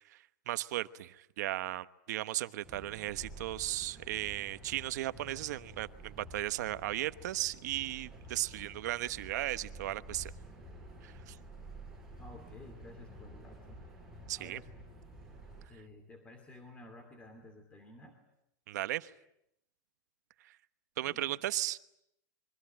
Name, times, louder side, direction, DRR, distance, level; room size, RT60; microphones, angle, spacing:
voice 1, 0.1-10.3 11.0-11.4 14.3-14.6 18.7-19.1 20.4-20.5 21.0-21.8, right 15 dB, 65° right, 13 dB, 1.1 m, -36 dB
sound 1, 2.6-15.7, right 1 dB, 5° right, 7.5 m, -50 dB
voice 2, 12.1-13.8 14.4-14.7 15.7-18.2 21.0-21.3, left 2 dB, 15° left, 6 dB, 2.6 m, -53 dB
28.0 x 23.5 x 8.9 m, 0.80 s
supercardioid pair, 165°, 10 cm